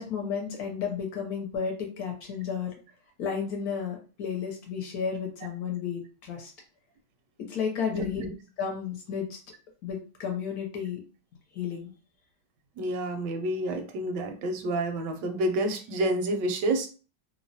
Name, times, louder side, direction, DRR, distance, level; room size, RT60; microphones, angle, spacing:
voice 1, 0.0-2.7 3.2-6.5 7.5-8.2 8.6-9.4 9.8-11.0 11.5-11.9, left 6 dB, 70° left, 2 dB, 1.1 m, -32 dB
voice 2, 7.9-8.3 12.8-16.9, right 1 dB, 85° right, 5 dB, 1.2 m, -29 dB
3.1 x 2.0 x 2.6 m, 0.36 s
omnidirectional pair, 1.8 m